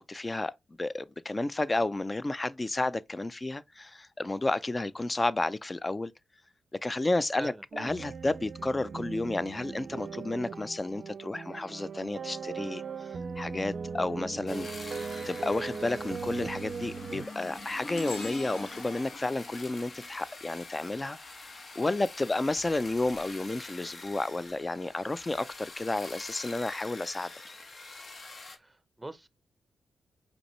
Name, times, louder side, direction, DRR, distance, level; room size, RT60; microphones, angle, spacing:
voice 1, 0.1-0.5 0.8-6.1 6.8-13.1 13.4-14.7 15.2-21.2 21.8-27.3, left 2 dB, 30° left, 0.4 m, -31 dB
sound 1, 7.7-17.3, right 5 dB, 60° right, 0.4 m, -39 dB
sound 2, 13.4-13.8 14.3-21.1 22.3-24.5 25.2-25.4 26.3-26.4, left 2 dB, 80° left, 2.0 m, -47 dB
sound 3, 14.5-28.6, left 3 dB, 50° left, 1.2 m, -46 dB
voice 2, 28.5-29.3, right 2 dB, 15° right, 0.6 m, -43 dB
5.1 x 3.3 x 3.1 m
supercardioid pair, 45°, 0 cm